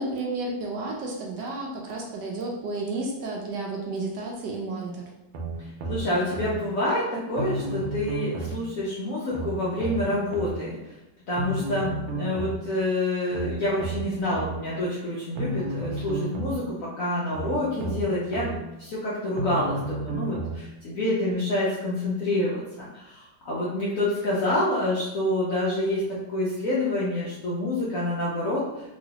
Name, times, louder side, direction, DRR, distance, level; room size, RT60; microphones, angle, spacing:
voice 1, 0.0-5.0, right 2 dB, 70° right, -1 dB, 1.1 m, -32 dB
sound 1, 5.3-6.6 7.4-8.6 9.3-10.6 11.4-12.6 13.3-14.6 15.4-16.6 17.3-18.6 19.4-20.6 21.3-21.4, right 2 dB, 90° right, 1.4 m, -32 dB
voice 2, 5.6-10.7 11.3-28.9, left 1 dB, 70° left, -7 dB, 0.8 m, -27 dB
3.1 x 3.0 x 2.8 m, 0.95 s
omnidirectional pair, 2.1 m